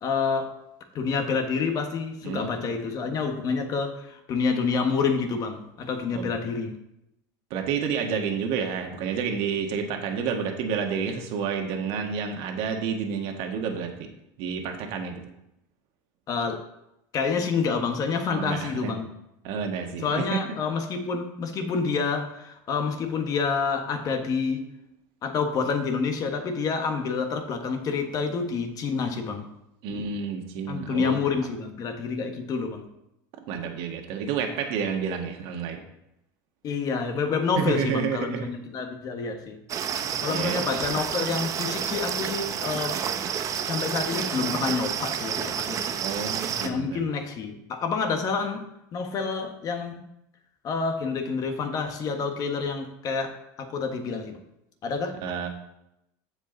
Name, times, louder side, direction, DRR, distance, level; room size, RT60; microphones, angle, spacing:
voice 1, 0.0-0.5 0.9-6.8 16.3-16.6 17.1-19.1 20.0-24.7 25.2-29.5 30.7-32.9 36.6-39.6 40.2-43.0 43.6-46.0 46.6-48.7 48.9-50.1 50.6-54.4 54.8-55.2, left 5 dB, 40° left, 6 dB, 1.3 m, -28 dB
voice 2, 7.5-14.1 14.4-15.2 18.3-19.0 19.4-20.4 29.8-31.2 33.5-35.8 37.6-38.5 40.0-40.5 46.0-47.0 55.2-55.5, right 6 dB, 60° right, 3 dB, 1.6 m, -30 dB
sound 1, 39.7-46.7, right 8 dB, 35° right, 0.8 m, -30 dB
15.0 x 5.2 x 4.0 m, 0.83 s
supercardioid pair, 135°, 10 cm